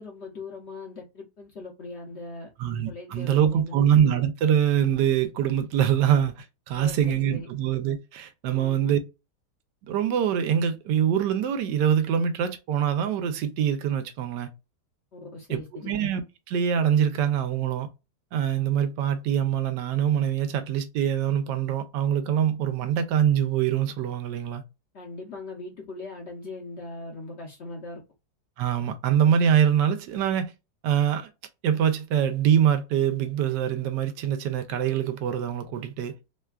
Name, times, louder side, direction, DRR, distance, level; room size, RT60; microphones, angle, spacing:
voice 1, 0.0-2.5 2.9-3.8 6.8-7.5 8.5-8.9 15.1-15.9 24.9-28.0, left 3 dB, 55° left, 0.8 m, -40 dB
voice 2, 2.6-9.0 9.9-14.5 15.5-16.2 16.5-17.9 18.3-24.6 28.6-30.5 30.8-31.3 31.6-36.1, right 9 dB, 85° right, 1.2 m, -24 dB
3.2 x 2.2 x 2.2 m
omnidirectional pair, 1.8 m